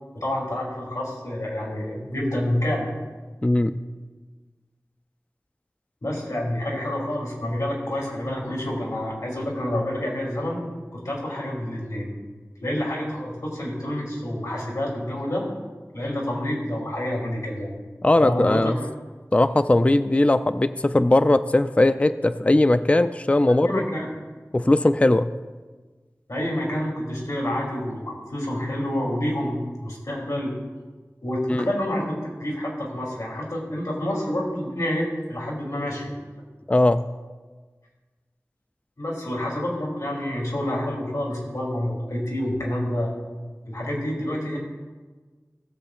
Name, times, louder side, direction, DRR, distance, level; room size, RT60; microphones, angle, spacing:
voice 1, 0.1-3.0 6.0-10.6 10.9-12.1 12.6-15.5 15.9-17.7 18.2-18.9 23.6-24.1 26.3-30.5 31.2-32.1 32.4-36.1 39.0-43.1 43.6-44.6, left 1 dB, 80° left, -4 dB, 2.9 m, -28 dB
voice 2, 3.4-3.8 18.0-18.8 19.3-23.8 24.5-25.3 31.5-31.7 36.7-37.0, left 2 dB, 20° left, 11 dB, 0.3 m, -19 dB
17.5 x 7.7 x 2.4 m, 1.4 s
wide cardioid pair, 50°, 6 cm